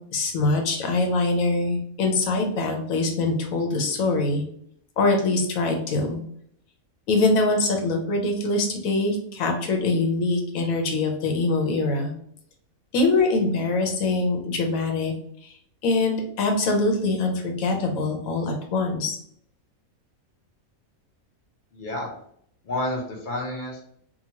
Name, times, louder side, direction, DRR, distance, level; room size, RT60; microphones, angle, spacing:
voice 1, 0.1-4.4 5.0-6.2 7.1-12.1 12.9-15.1 15.4-15.5 15.8-19.2, left 3 dB, 80° left, 3 dB, 1.1 m, -23 dB
voice 2, 21.7-22.1 22.7-23.8, left 1 dB, 45° left, -2 dB, 0.7 m, -29 dB
2.9 x 2.3 x 2.8 m, 0.65 s
omnidirectional pair, 1.4 m